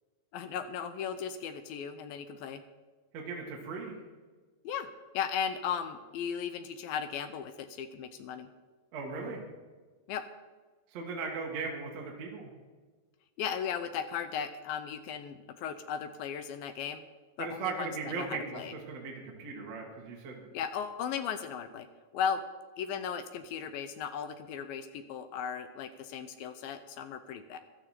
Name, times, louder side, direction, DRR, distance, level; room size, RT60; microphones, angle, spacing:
voice 1, 0.3-2.6 4.6-4.9 5.1-8.5 10.1-10.2 13.4-17.0 17.4-18.7 20.5-21.9 22.1-22.4 22.8-27.6, left 7 dB, 80° left, 10 dB, 2.2 m, -36 dB
voice 2, 3.1-4.0 8.9-9.4 10.9-12.5 17.4-20.4, right 4 dB, 50° right, 0 dB, 2.4 m, -38 dB
15.5 x 12.5 x 4.3 m, 1.4 s
omnidirectional pair, 4.8 m